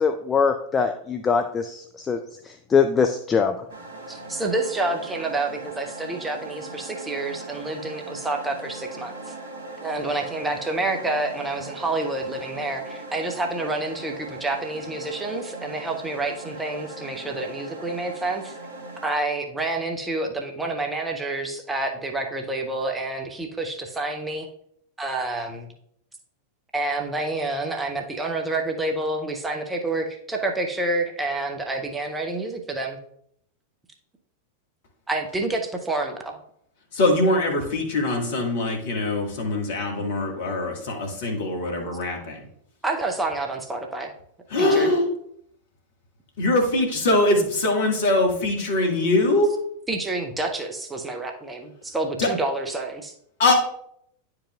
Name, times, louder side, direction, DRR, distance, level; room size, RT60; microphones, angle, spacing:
voice 1, 0.0-2.2 2.5-3.5, left 6 dB, 20° left, 7 dB, 0.4 m, -22 dB
sound 1, 3.7-19.1, right 2 dB, 55° right, 1.5 m, -39 dB
voice 2, 4.1-9.1 9.8-18.5 19.0-24.5 25.0-25.7 26.7-33.0 35.1-36.4 42.8-44.1 44.6-44.9 49.9-53.1, right 2 dB, 10° right, 2 dB, 0.8 m, -28 dB
voice 3, 36.9-42.4 44.5-45.0 46.4-49.5 52.2-52.3 53.4-53.5, left 2 dB, 55° left, 1 dB, 1.6 m, -22 dB
10.0 x 4.8 x 2.4 m, 0.69 s
figure-of-eight pair, 90°, 0 cm